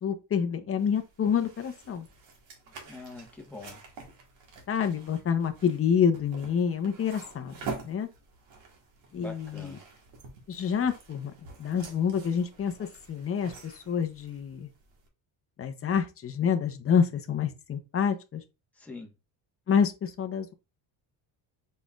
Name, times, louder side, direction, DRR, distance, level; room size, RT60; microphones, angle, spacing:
voice 1, 0.0-2.0 4.7-8.1 9.1-9.8 10.5-11.3 11.6-14.7 15.6-18.4 19.7-20.5, left 7 dB, 25° left, 0.7 m, -28 dB
sound 1, 0.8-15.1, right 4 dB, 65° right, 1.6 m, -47 dB
voice 2, 2.9-3.8 9.1-9.8 18.7-19.1, left 2 dB, 5° left, 1.2 m, -43 dB
5.2 x 4.1 x 2.4 m
cardioid pair, 140°, 50 cm